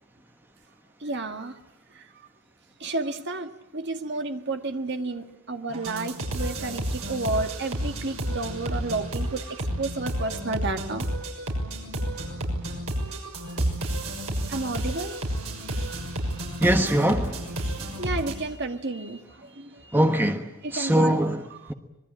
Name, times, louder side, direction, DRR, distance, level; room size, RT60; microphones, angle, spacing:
voice 1, 1.0-1.6 1.9-2.1 2.8-11.0 12.2-12.4 13.4-13.7 14.4-15.2 16.2-16.6 18.0-20.1 20.6-21.2 21.5-21.7, right 2 dB, 50° right, 6 dB, 1.8 m, -31 dB
sound 1, 5.7-18.3, right 1 dB, 80° right, 6.4 m, -31 dB
voice 2, 16.6-17.5 19.9-20.4 20.7-21.4, right 1 dB, 10° right, 6 dB, 1.2 m, -21 dB
26.0 x 21.5 x 8.7 m, 0.90 s
head